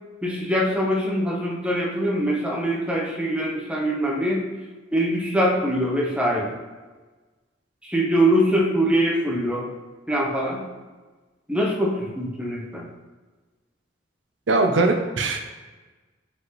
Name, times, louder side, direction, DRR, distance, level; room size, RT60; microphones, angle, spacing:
voice 1, 0.2-4.4 4.9-6.5 7.8-9.7 10.1-10.6 11.5-12.8, equal, 5° right, -3 dB, 0.9 m, -23 dB
voice 2, 14.5-15.4, right 2 dB, 85° right, 4 dB, 0.7 m, -20 dB
5.8 x 5.2 x 3.1 m, 1.3 s
head